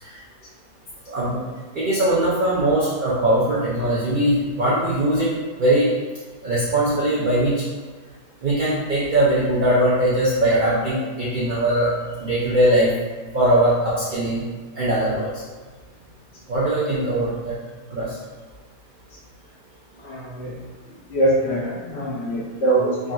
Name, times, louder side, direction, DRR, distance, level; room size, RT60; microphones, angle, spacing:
voice 1, 1.1-1.4 1.7-5.9 6.4-7.6 8.4-11.9 12.2-12.9 13.3-14.4 14.8-15.3 16.5-17.5 17.9-18.2, right 1 dB, 70° right, -8 dB, 0.4 m, -20 dB
voice 2, 20.0-20.5 21.1-23.1, right 1 dB, 55° left, -7 dB, 0.9 m, -23 dB
3.6 x 2.5 x 2.3 m, 1.4 s
omnidirectional pair, 1.6 m